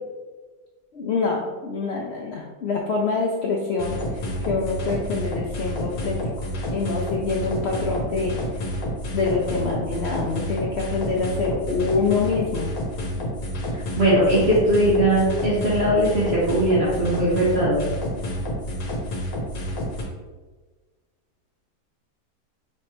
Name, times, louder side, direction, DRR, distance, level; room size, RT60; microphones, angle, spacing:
voice 1, 0.9-3.9 4.5-6.2 6.7-8.3 9.1-12.7, left 4 dB, 85° left, -2 dB, 0.5 m, -25 dB
sound 1, 3.8-20.0, equal, 60° left, 1.4 m, -29 dB
voice 2, 14.0-17.8, right 1 dB, 40° right, -9 dB, 1.2 m, -20 dB
5.7 x 3.1 x 3.0 m, 1.3 s
omnidirectional pair, 1.8 m